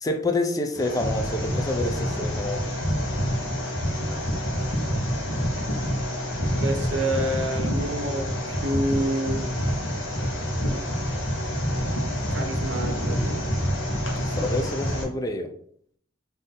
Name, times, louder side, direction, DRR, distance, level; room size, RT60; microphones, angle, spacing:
voice 1, 0.0-2.8 14.1-15.5, left 2 dB, 20° left, 0.4 m, -28 dB
sound 1, 0.7-15.0, equal, 75° left, 1.0 m, -27 dB
voice 2, 6.6-9.4 12.3-13.6, right 1 dB, 80° right, 0.7 m, -28 dB
3.7 x 2.7 x 4.0 m
head